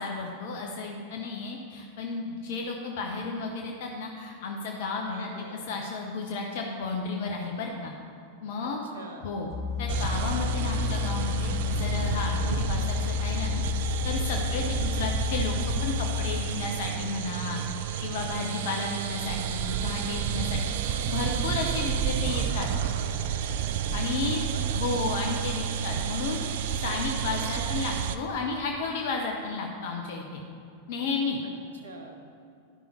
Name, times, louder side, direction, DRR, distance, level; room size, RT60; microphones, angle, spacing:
voice 1, 0.0-5.3 5.7-7.9 8.4-8.8 9.2-9.5 9.8-13.6 14.0-15.5 15.8-17.6 18.0-22.7 23.9-24.4 24.7-30.4 30.9-31.4, left 4 dB, 55° left, 1 dB, 0.8 m, -33 dB
voice 2, 5.1-5.6 8.6-9.3 14.3-14.9 24.2-24.7 31.4-31.5 31.8-32.2, right 2 dB, 70° right, 3 dB, 1.0 m, -45 dB
sound 1, 9.5-16.4, left 11 dB, 25° left, 2.0 m, -31 dB
sound 2, 9.9-28.2, right 9 dB, 55° right, 0.3 m, -30 dB
11.0 x 5.4 x 4.4 m, 2.5 s
figure-of-eight pair, 90°, 0 cm